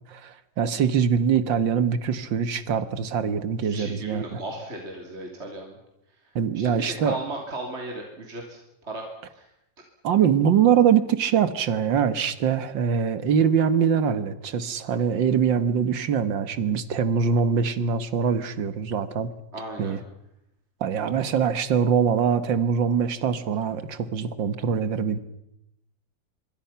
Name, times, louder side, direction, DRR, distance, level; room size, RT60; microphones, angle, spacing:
voice 1, 0.1-4.4 6.4-7.2 10.0-19.3 19.8-20.0 20.8-25.2, right 7 dB, 85° right, 13 dB, 2.1 m, -23 dB
voice 2, 3.6-5.8 6.5-9.1 9.3-9.5 19.5-20.0, right 2 dB, 35° right, 1 dB, 3.4 m, -36 dB
25.0 x 24.5 x 5.8 m, 0.82 s
omnidirectional pair, 2.0 m